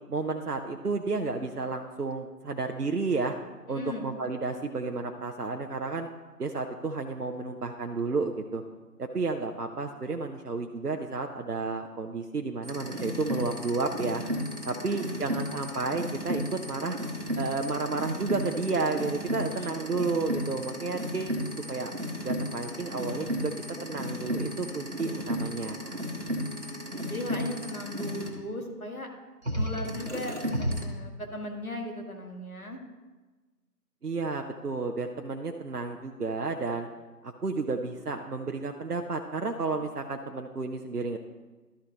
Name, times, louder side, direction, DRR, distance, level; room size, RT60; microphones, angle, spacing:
voice 1, 0.1-3.3 3.7-6.1 6.4-8.6 9.0-14.2 14.6-17.0 17.4-21.4 21.7-21.9 22.2-23.5 23.8-26.0 34.0-36.9 37.2-41.2, right 3 dB, 70° right, 5 dB, 0.8 m, -32 dB
voice 2, 3.7-4.1 14.7-15.4 19.5-19.7 26.6-29.1 29.5-32.8, left 1 dB, 60° left, 2 dB, 1.8 m, -38 dB
sound 1, 12.6-28.3 29.4-30.8, equal, 45° right, 1.4 m, -34 dB
12.5 x 4.6 x 3.9 m, 1.3 s
figure-of-eight pair, 175°, 48 cm